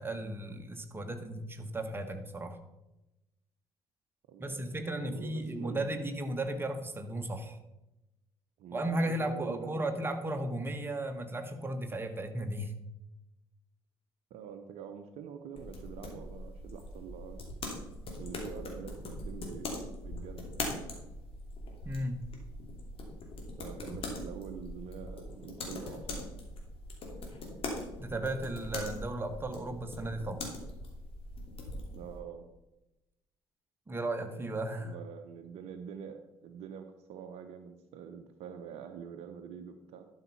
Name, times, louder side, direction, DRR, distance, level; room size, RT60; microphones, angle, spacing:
voice 1, 0.0-2.6 4.4-7.6 8.7-12.7 21.8-22.2 28.0-30.5 33.9-34.9, right 1 dB, 15° right, 6 dB, 1.4 m, -35 dB
voice 2, 4.3-6.1 8.6-10.1 14.3-17.5 18.2-21.0 23.6-26.4 31.9-32.5 34.8-40.1, right 7 dB, 55° right, 8 dB, 0.8 m, -46 dB
sound 1, 15.6-32.2, left 2 dB, 45° left, 2.7 m, -41 dB
12.0 x 5.6 x 5.6 m, 0.97 s
figure-of-eight pair, 50°, 13 cm